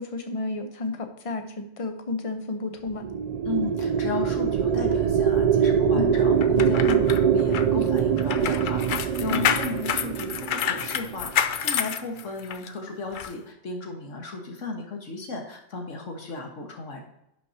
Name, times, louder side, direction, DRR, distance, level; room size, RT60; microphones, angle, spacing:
voice 1, 0.0-3.0 5.9-6.1 9.3-9.7, left 3 dB, 30° left, 6 dB, 0.9 m, -32 dB
sound 1, 2.9-11.4, right 7 dB, 90° right, 0.3 m, -23 dB
voice 2, 3.5-17.0, left 3 dB, 85° left, 2 dB, 1.9 m, -34 dB
sound 2, 6.4-12.7 13.1-13.3, left 8 dB, 55° left, 0.6 m, -28 dB
10.5 x 6.1 x 2.8 m, 0.83 s
omnidirectional pair, 1.3 m